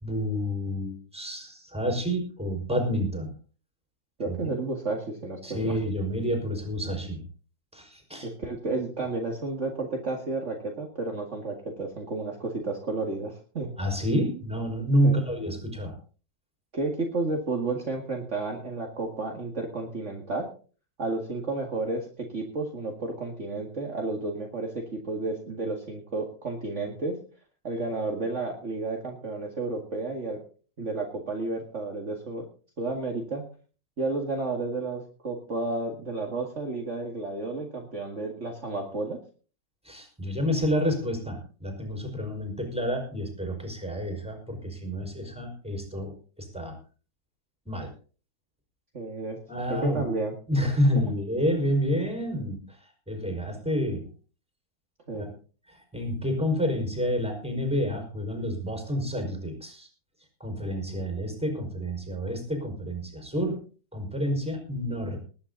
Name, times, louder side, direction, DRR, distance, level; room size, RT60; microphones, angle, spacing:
voice 1, 0.0-3.3 4.3-4.5 5.4-7.2 7.7-8.3 13.8-15.9 39.8-46.1 46.5-46.7 47.6-47.9 49.5-50.1 50.5-52.6 53.1-54.0 55.1-55.3 55.9-59.9 60.4-63.6 63.9-65.2, equal, 5° right, 3 dB, 5.1 m, -29 dB
voice 2, 4.2-5.8 8.2-13.7 15.0-15.2 16.7-20.5 21.0-27.2 27.6-30.4 30.8-32.4 32.8-33.4 34.0-39.2 48.9-50.3 51.0-51.1 55.1-55.3, right 3 dB, 40° right, 1 dB, 2.3 m, -32 dB
20.0 x 10.5 x 4.0 m, 0.38 s
omnidirectional pair, 1.9 m